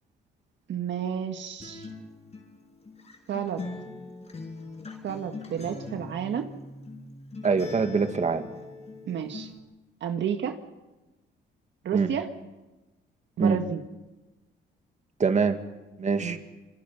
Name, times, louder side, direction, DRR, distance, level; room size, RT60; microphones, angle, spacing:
voice 1, 0.7-1.9 3.3-3.6 5.0-6.5 9.1-9.5 10.0-10.5 11.8-12.3 13.4-13.8 16.2-16.4, right 8 dB, 70° right, 6 dB, 1.6 m, -31 dB
Acoustic guitar, 1.6-9.6, left 3 dB, 35° left, 6.1 m, -41 dB
voice 2, 7.4-8.5 11.9-12.1 13.4-13.6 15.2-15.6 16.0-16.4, right 5 dB, 35° right, 7 dB, 2.1 m, -24 dB
27.0 x 26.0 x 5.7 m, 1.1 s
cardioid pair, 90°, 20 cm